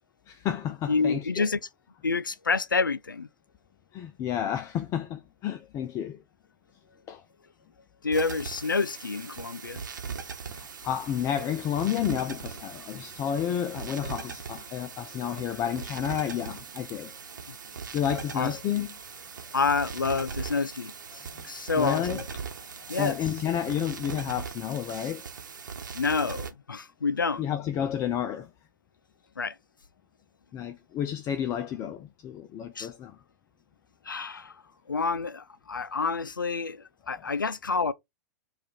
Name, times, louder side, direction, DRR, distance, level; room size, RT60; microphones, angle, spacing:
voice 1, 0.3-1.5 3.9-6.2 7.1-7.2 10.5-17.1 17.9-18.9 21.3-21.4 21.7-22.4 22.9-25.2 27.4-28.5 30.5-33.2 37.1-37.3, left 9 dB, 30° left, 0.4 m, -31 dB
voice 2, 0.9-1.6 2.0-3.3 8.0-9.8 17.5-17.6 18.3-18.6 19.5-22.2 22.9-23.2 25.9-27.4 29.4-29.5 32.8-32.9 34.1-34.5 34.9-37.9, left 4 dB, 90° left, 0.4 m, -28 dB
sound 1, 8.1-26.5, right 6 dB, 70° right, 1.0 m, -40 dB
4.7 x 2.5 x 4.1 m
figure-of-eight pair, 100°, 11 cm